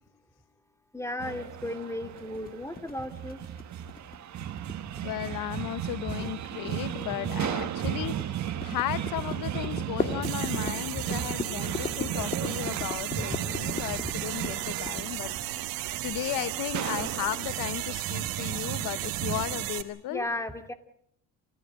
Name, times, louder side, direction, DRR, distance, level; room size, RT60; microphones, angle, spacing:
voice 1, 0.9-3.4 20.1-20.7, left 1 dB, 10° left, 8 dB, 2.6 m, -35 dB
sound 1, 1.2-19.7, right 11 dB, 55° right, 1.6 m, -36 dB
sound 2, 2.2-15.9, left 4 dB, 25° left, 2.6 m, -38 dB
voice 2, 5.0-8.1 8.6-15.3 15.6-15.7 16.0-20.3, left 14 dB, 70° left, 16 dB, 1.0 m, -35 dB
sound 3, 10.2-19.8, right 16 dB, 80° right, 2.0 m, -35 dB
28.0 x 15.0 x 8.8 m, 0.70 s
supercardioid pair, 90°, 34 cm